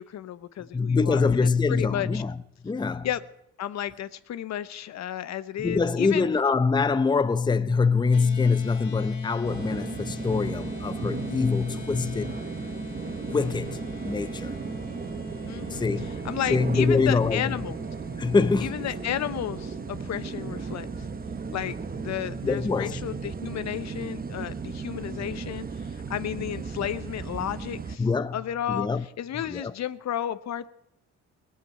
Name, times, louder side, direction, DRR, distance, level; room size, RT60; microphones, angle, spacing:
voice 1, 0.0-2.2 3.0-3.2 3.6-6.3 15.5-15.8 16.2-17.8 18.6-20.9 21.5-28.1 28.3-28.9 29.2-30.7, left 11 dB, 60° left, 0.8 m, -33 dB
voice 2, 0.7-2.4 2.6-3.1 5.6-12.4 13.0-14.6 15.7-16.1 16.5-17.5 18.2-18.8 22.4-23.0 28.0-28.4 28.7-29.0 29.3-29.7, left 4 dB, 15° left, 0.6 m, -24 dB
sound 1, 8.1-22.5, left 3 dB, 75° left, 2.9 m, -43 dB
sound 2, 9.4-28.0, right 5 dB, 30° right, 1.0 m, -36 dB
18.5 x 8.4 x 8.7 m
cardioid pair, 90°, 30 cm